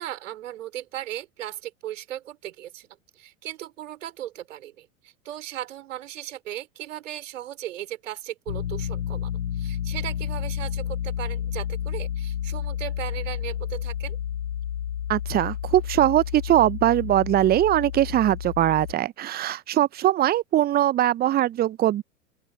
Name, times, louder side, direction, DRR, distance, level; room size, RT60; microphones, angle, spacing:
voice 1, 0.0-2.9 3.2-14.2, right 12 dB, 60° right, 4.1 m, -37 dB
sound 1, 8.5-18.9, left 10 dB, 65° left, 5.7 m, -31 dB
voice 2, 15.1-22.0, right 13 dB, 20° right, 1.0 m, -21 dB
open air
figure-of-eight pair, 90°, 43 cm